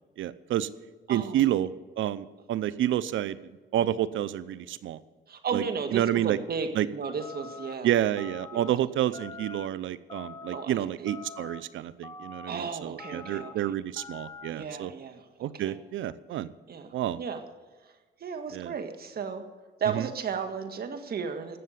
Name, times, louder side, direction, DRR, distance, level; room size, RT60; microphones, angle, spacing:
voice 1, 0.2-0.7 1.1-1.7 2.0-3.4 3.7-5.0 5.5-5.6 5.9-6.4 6.8-6.9 7.8-14.9 15.4-16.5 16.9-17.2 18.5-18.7 19.9-20.1, right 12 dB, 75° right, 16 dB, 0.7 m, -29 dB
voice 2, 1.1-1.5 3.8-3.9 5.3-8.0 8.5-8.7 9.0-9.2 10.5-11.1 12.5-13.7 14.5-15.8 16.7-17.4 18.2-19.4 19.8-21.6, right 6 dB, 50° right, 7 dB, 1.8 m, -34 dB
sound 1, 7.2-7.7 8.2-8.7 9.1-9.7 10.1-10.6 11.1-11.6 12.0-12.6 13.0-13.5 14.0-14.5, left 5 dB, 20° left, 1.1 m, -44 dB
17.0 x 6.7 x 8.0 m, 1.3 s
cardioid pair, 90°, 20 cm